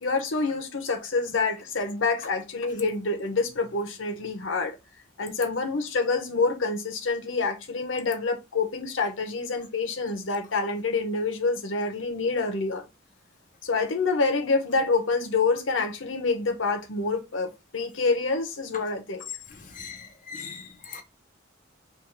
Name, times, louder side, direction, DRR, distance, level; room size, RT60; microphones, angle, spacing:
voice 1, 0.0-4.8 5.2-12.9 13.6-19.3, left 4 dB, 90° left, 0.8 m, -27 dB
voice 2, 19.5-21.0, left 5 dB, 40° left, 0.8 m, -41 dB
3.4 x 2.4 x 4.3 m
head